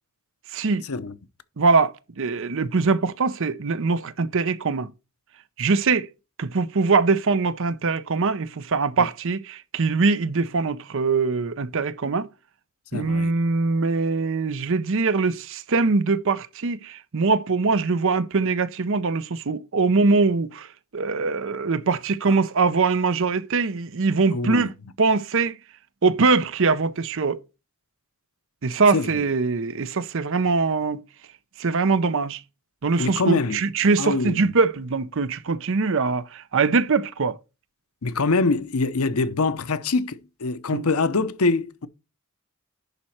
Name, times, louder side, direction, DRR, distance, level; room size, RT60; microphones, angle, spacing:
voice 1, 0.5-0.8 1.6-4.9 5.6-6.1 6.4-12.3 12.9-24.7 25.0-25.6 26.0-27.4 28.6-31.0 31.6-32.4 32.8-37.4 40.7-40.9, right 4 dB, 60° right, 0.7 m, -22 dB
voice 2, 12.9-13.3 24.3-24.7 28.9-29.1 33.0-33.6 34.0-34.4 38.0-41.9, left 3 dB, 85° left, 0.8 m, -24 dB
11.0 x 4.3 x 4.3 m
head